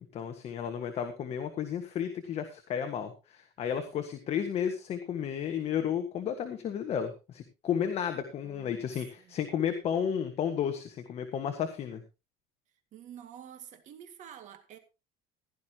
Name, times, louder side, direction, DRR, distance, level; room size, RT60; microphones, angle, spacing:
voice 1, 0.1-12.0, left 8 dB, 40° left, 1.6 m, -33 dB
voice 2, 8.4-8.9 9.2-9.4 12.9-14.8, right 9 dB, 45° right, 2.1 m, -49 dB
16.0 x 12.0 x 2.9 m
cardioid pair, 160°, 17 cm